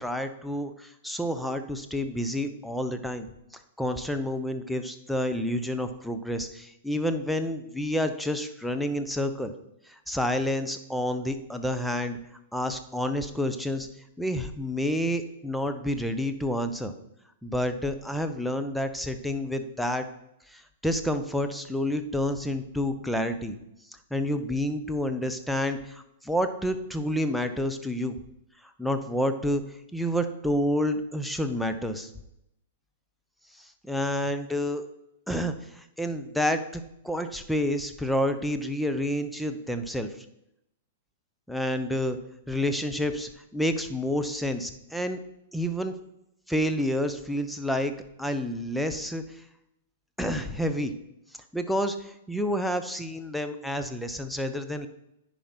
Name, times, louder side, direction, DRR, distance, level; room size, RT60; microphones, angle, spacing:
voice 1, 0.0-3.3 3.8-9.5 9.9-12.2 12.5-13.9 14.2-16.9 17.4-20.1 20.5-23.6 24.1-28.2 28.8-29.6 29.9-32.1 33.6-34.8 35.3-40.1 41.5-42.2 42.5-45.2 45.5-45.9 46.5-47.9 48.2-49.4 50.2-50.9 51.5-54.9, equal, ahead, 7 dB, 0.8 m, -29 dB
10.0 x 4.9 x 4.3 m, 0.81 s
hypercardioid pair, 115°, 0 cm